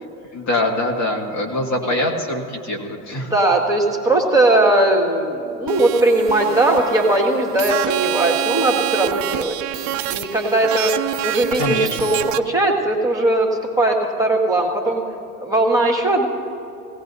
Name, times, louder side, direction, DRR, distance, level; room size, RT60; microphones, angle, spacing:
voice 1, 0.3-3.3 11.6-11.9, left 1 dB, 35° left, 1 dB, 2.0 m, -23 dB
voice 2, 3.1-15.0 15.4-16.3, right 2 dB, 5° right, -1 dB, 1.9 m, -19 dB
sound 1, 5.7-12.4, right 13 dB, 40° right, 0.6 m, -26 dB
17.5 x 17.5 x 2.7 m, 2.7 s
hypercardioid pair, 85°, 46 cm